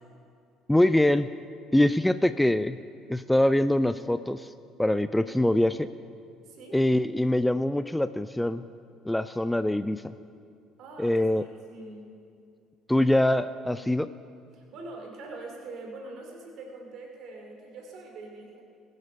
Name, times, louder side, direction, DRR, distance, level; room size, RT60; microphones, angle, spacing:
voice 1, 0.7-1.3 1.7-2.8 3.1-4.5 4.8-5.9 6.7-8.6 9.1-10.0 11.0-11.4 12.9-14.1, left 1 dB, 5° left, 13 dB, 0.4 m, -23 dB
voice 2, 6.4-6.8 10.8-12.1 14.5-18.6, right 3 dB, 50° right, 1 dB, 2.6 m, -43 dB
20.5 x 8.1 x 5.2 m, 2.4 s
figure-of-eight pair, 55°, 0 cm